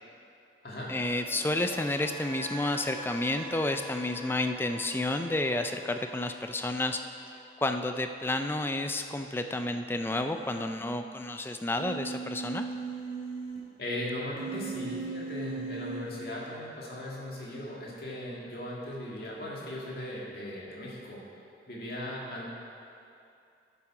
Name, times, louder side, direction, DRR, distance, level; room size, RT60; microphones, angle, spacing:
sound 1, 0.8-8.9 9.1-9.5, right 1 dB, 5° right, 2.2 m, -46 dB
voice 1, 0.9-7.0 7.6-12.7, left 2 dB, 10° left, 7 dB, 0.3 m, -30 dB
Human voice, 9.9-10.8 11.8-13.6 14.4-16.0, right 4 dB, 35° left, 2.4 m, -38 dB
voice 2, 13.8-21.2 21.7-22.5, left 1 dB, 55° left, -4 dB, 2.0 m, -38 dB
11.0 x 7.2 x 4.8 m, 2.6 s
head